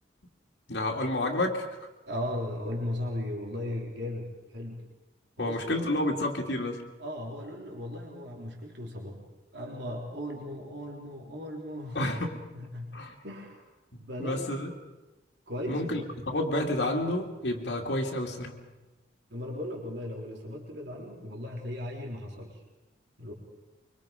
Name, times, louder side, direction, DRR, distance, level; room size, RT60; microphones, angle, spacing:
voice 1, 0.7-1.7 5.4-6.8 11.9-12.4 12.9-13.1 14.2-14.7 15.7-16.0 16.3-18.5, left 1 dB, 70° left, 0 dB, 2.6 m, -29 dB
voice 2, 2.1-4.9 5.4-6.0 7.0-9.2 9.5-12.0 12.5-12.9 13.2-13.6 14.0-14.5 15.5-16.0 19.3-22.6 23.2-23.3, left 1 dB, 70° right, 0 dB, 3.8 m, -37 dB
24.5 x 24.5 x 5.2 m, 1.1 s
head